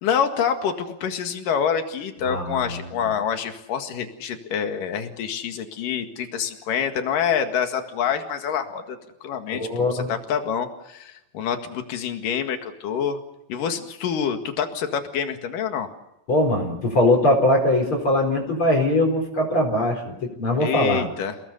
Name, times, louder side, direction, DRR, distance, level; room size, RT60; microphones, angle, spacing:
voice 1, 0.0-13.2 13.5-15.9 20.6-21.4, left 7 dB, 75° left, 6 dB, 3.5 m, -26 dB
voice 2, 2.2-3.1 9.5-10.1 16.3-21.1, left 1 dB, 35° left, 2 dB, 5.0 m, -21 dB
30.0 x 19.0 x 6.9 m, 0.88 s
omnidirectional pair, 3.9 m